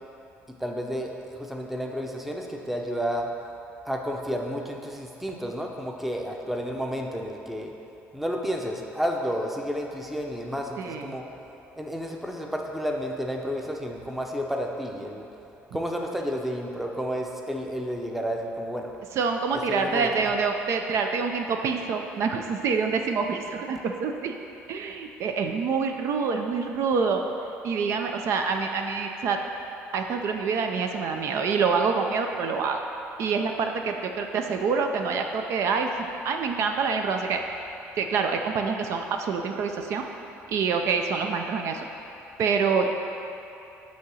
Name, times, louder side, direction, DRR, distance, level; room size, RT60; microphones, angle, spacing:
voice 1, 0.5-3.3 3.8-7.7 8.1-11.3 11.8-15.3 15.7-18.9 19.7-20.1, equal, 5° right, 1 dB, 0.6 m, -31 dB
voice 2, 10.8-11.2 19.1-24.4 24.7-27.2 27.6-29.4 29.9-32.8 33.2-35.9 36.2-37.4 38.0-40.0 40.5-41.9 42.4-42.9, right 5 dB, 60° right, 4 dB, 0.5 m, -26 dB
8.3 x 2.9 x 6.2 m, 2.9 s
cardioid pair, 105°, 5 cm